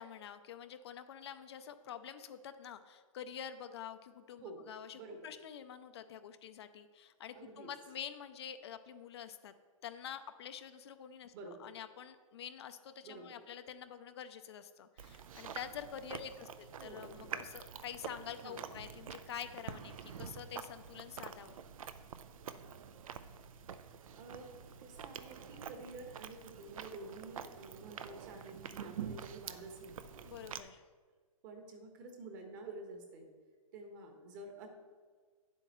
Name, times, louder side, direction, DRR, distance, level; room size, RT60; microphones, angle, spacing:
voice 1, 0.0-9.5 9.8-11.3 11.6-21.6 30.2-30.8, left 9 dB, 50° left, 9 dB, 0.5 m, -47 dB
voice 2, 4.9-5.3 7.3-7.7 11.3-11.7 13.0-13.4 16.8-17.3 18.4-18.7 23.8-23.9 24.1-30.0 31.4-33.3 33.7-34.7, right 3 dB, 30° right, 4 dB, 1.3 m, -50 dB
Chewing mastication, 15.0-30.6, right 7 dB, 70° right, 0.6 m, -47 dB
9.6 x 7.8 x 3.0 m, 1.5 s
hypercardioid pair, 155°, 18 cm